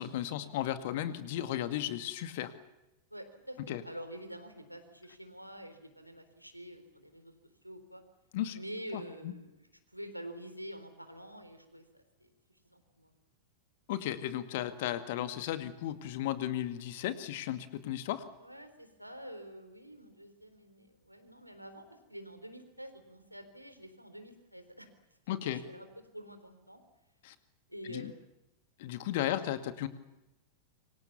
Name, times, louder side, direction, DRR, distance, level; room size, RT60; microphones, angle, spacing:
voice 1, 0.0-2.5 3.7-3.8 8.3-8.6 8.9-9.3 13.9-18.2 25.3-25.6 27.2-27.3 27.8-28.1 28.8-29.9, left 12 dB, 50° left, 10 dB, 2.1 m, -35 dB
voice 2, 3.1-7.3 7.6-8.0 8.5-9.7 9.9-12.3 12.6-13.1 18.4-24.9 25.4-25.9 26.1-26.8 27.7-28.2 29.2-29.4, equal, 90° right, 8 dB, 3.8 m, -47 dB
27.0 x 24.5 x 7.2 m, 0.94 s
figure-of-eight pair, 90°, 0 cm